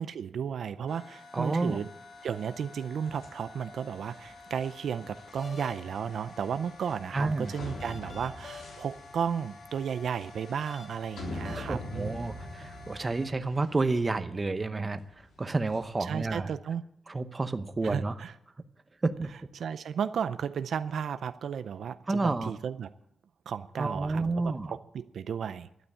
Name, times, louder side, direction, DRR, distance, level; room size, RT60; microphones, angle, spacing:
voice 1, 0.0-1.9 2.2-12.2 16.0-16.8 17.8-18.3 19.5-22.9 23.5-25.7, right 7 dB, 80° right, 12 dB, 0.5 m, -34 dB
sound 1, 0.9-13.3, left 3 dB, 50° left, 2.0 m, -49 dB
voice 2, 1.3-1.8 7.1-7.5 11.5-15.0 15.4-16.5 17.1-18.2 19.0-19.3 22.1-22.5 23.8-24.7, right 3 dB, 25° right, 10 dB, 0.8 m, -30 dB
sound 2, 3.0-16.3, left 2 dB, 90° left, 3.6 m, -45 dB
12.5 x 9.6 x 8.6 m, 0.81 s
wide cardioid pair, 120°, 0 cm